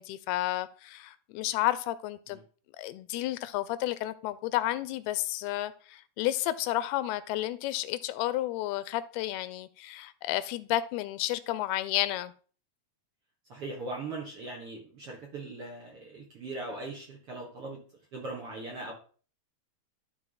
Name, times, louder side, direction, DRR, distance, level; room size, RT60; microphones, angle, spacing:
voice 1, 0.0-2.4 2.7-12.3, left 15 dB, 85° left, 2.5 m, -31 dB
voice 2, 13.5-17.8 18.1-18.9, right 2 dB, 55° right, 1.6 m, -40 dB
13.0 x 4.8 x 3.9 m
omnidirectional pair, 4.6 m